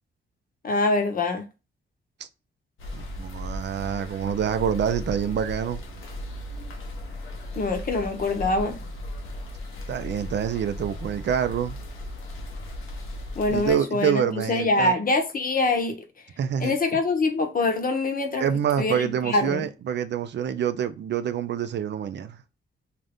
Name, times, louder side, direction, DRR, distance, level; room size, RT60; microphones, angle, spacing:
voice 1, 0.6-1.4 7.6-8.8 13.3-16.0 16.6-18.4 18.8-19.6, left 2 dB, 45° left, 0.8 m, -24 dB
sound 1, 2.8-13.7, left 1 dB, 90° left, 0.8 m, -36 dB
voice 2, 2.9-5.8 9.9-11.8 13.5-14.9 16.4-16.8 18.4-22.4, right 8 dB, 60° right, 0.4 m, -26 dB
2.6 x 2.4 x 3.4 m
cardioid pair, 85°, 20 cm